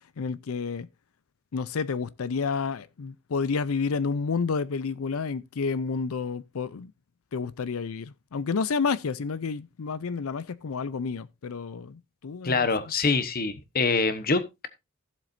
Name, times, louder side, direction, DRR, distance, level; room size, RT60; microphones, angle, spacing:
voice 1, 0.2-0.9 1.5-6.9 7.3-12.7, left 5 dB, 70° left, 0.5 m, -30 dB
voice 2, 12.4-14.7, left 4 dB, 45° left, 1.1 m, -25 dB
16.0 x 7.4 x 2.6 m
head